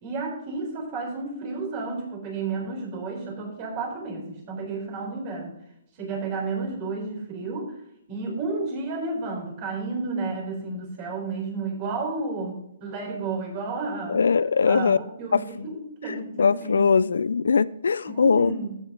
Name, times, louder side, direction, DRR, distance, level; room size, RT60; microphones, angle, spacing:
voice 1, 0.0-5.5 6.0-7.8 8.1-14.2 14.7-17.0 18.1-18.7, right 3 dB, 30° right, 1 dB, 4.1 m, -32 dB
voice 2, 14.1-15.0 15.3-15.7 16.4-18.5, left 5 dB, 90° left, 19 dB, 0.4 m, -21 dB
14.5 x 9.1 x 3.8 m, 0.78 s
hypercardioid pair, 155°, 0 cm